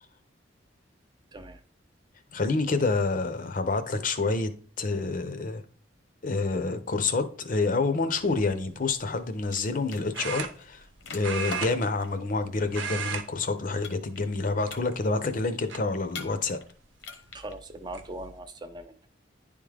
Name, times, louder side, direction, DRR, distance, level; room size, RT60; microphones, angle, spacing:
voice 1, 2.3-4.5 4.8-5.6 6.2-16.6, left 3 dB, 45° left, 0.6 m, -28 dB
sound 1, 8.2-8.5 10.1-10.9 11.2-12.4 12.7-13.3 13.6-13.8 14.6-15.1 15.7-15.8 17.2-17.3 17.7-18.0, right 6 dB, 85° right, 0.8 m, -34 dB
sound 2, 8.9-9.2 9.4-12.2 13.8-14.4 14.7-15.3 16.1-16.7 17.0-17.5, left 4 dB, 75° left, 0.9 m, -42 dB
voice 2, 17.3-19.1, right 1 dB, 25° right, 0.5 m, -40 dB
10.0 x 3.6 x 3.4 m
head